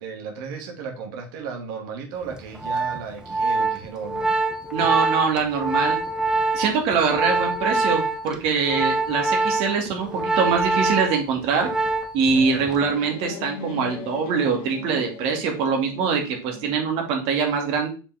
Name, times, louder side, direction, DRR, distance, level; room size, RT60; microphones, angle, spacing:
voice 1, 0.0-4.3 12.3-12.7, right 5 dB, 70° right, 2 dB, 2.2 m, -35 dB
Organ, 2.3-12.3 12.6-12.9, right 3 dB, 5° right, 0.8 m, -25 dB
voice 2, 4.7-6.0 6.5-11.7 12.1-17.9, right 5 dB, 50° right, 2 dB, 2.4 m, -23 dB
sound 1, 12.3-17.0, left 5 dB, 50° left, 1.8 m, -39 dB
6.7 x 5.2 x 3.6 m, 0.34 s
supercardioid pair, 140°, 12 cm